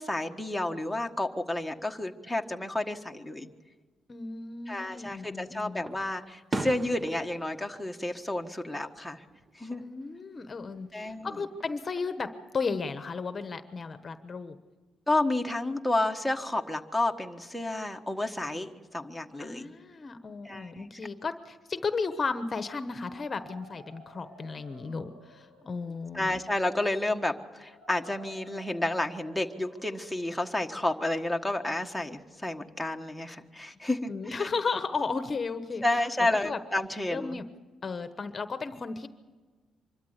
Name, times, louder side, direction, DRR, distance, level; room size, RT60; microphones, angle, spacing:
voice 1, 0.0-3.5 4.7-9.2 9.5-9.8 10.9-11.3 15.1-19.7 20.4-20.9 26.1-34.1 34.4-34.5 35.8-37.4, left 1 dB, ahead, 2 dB, 1.4 m, -31 dB
voice 2, 4.1-5.8 9.8-14.6 19.4-26.3 34.1-36.0 36.4-36.6 37.1-37.5 37.8-39.1, left 4 dB, 35° left, 10 dB, 1.1 m, -34 dB
Fireworks, 4.7-5.4 5.9-9.0 9.3-9.9 11.4-12.2, right 2 dB, 25° right, 1.1 m, -39 dB
sound 1, 22.8-32.6, equal, 90° right, 4.4 m, -55 dB
25.0 x 13.0 x 8.2 m, 1.4 s
cardioid pair, 90°, 0 cm